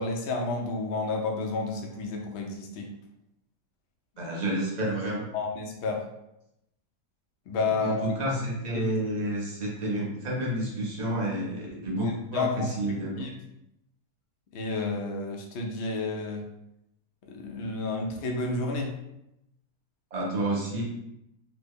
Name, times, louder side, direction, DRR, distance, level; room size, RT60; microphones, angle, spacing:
voice 1, 0.0-2.9 5.3-6.0 7.5-8.0 8.7-8.8 12.0-13.3 14.5-16.4 17.3-18.9, left 3 dB, 75° left, 1 dB, 0.6 m, -31 dB
voice 2, 4.2-5.2 7.7-13.2 20.1-20.8, right 1 dB, 60° right, -4 dB, 0.4 m, -30 dB
3.0 x 2.1 x 3.4 m, 0.83 s
omnidirectional pair, 1.7 m